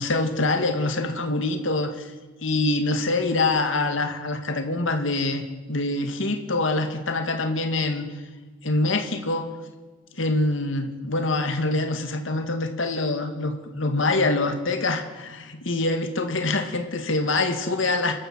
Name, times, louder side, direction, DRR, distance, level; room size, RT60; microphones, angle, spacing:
voice 1, 0.0-2.1 2.4-8.1 8.6-9.5 10.2-18.1, left 2 dB, 70° left, 6 dB, 2.0 m, -25 dB
28.0 x 12.5 x 7.4 m, 1.3 s
head